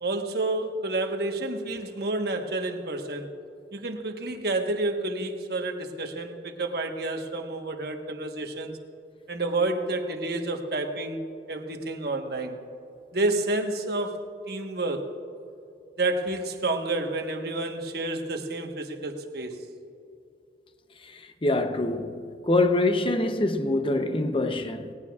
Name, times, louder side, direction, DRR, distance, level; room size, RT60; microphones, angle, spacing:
voice 1, 0.0-3.3 3.7-8.8 9.3-11.2 11.5-12.6 13.1-14.2 14.5-15.1 16.0-19.6, right 2 dB, 55° right, 1.2 m, -29 dB
voice 2, 21.1-24.9, left 2 dB, 30° left, 0.7 m, -25 dB
18.5 x 18.5 x 2.4 m
head